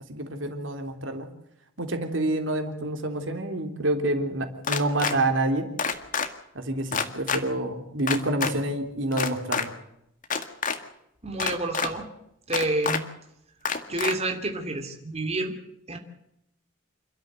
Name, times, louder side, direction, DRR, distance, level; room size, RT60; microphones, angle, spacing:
voice 1, 0.1-1.3 1.8-5.7 6.5-9.7, right 1 dB, 75° right, 5 dB, 3.4 m, -28 dB
sound 1, 4.6-5.1 5.8-6.3 6.9-7.4 8.1-8.5 9.1-9.6 10.2-10.8 11.4-11.9 12.5-13.0 13.6-14.1, left 6 dB, 45° left, 2.0 m, -27 dB
voice 2, 11.2-12.1 12.5-13.0 13.9-15.6 15.9-16.0, right 2 dB, 35° right, 4 dB, 2.9 m, -29 dB
29.0 x 13.0 x 7.7 m, 0.81 s
head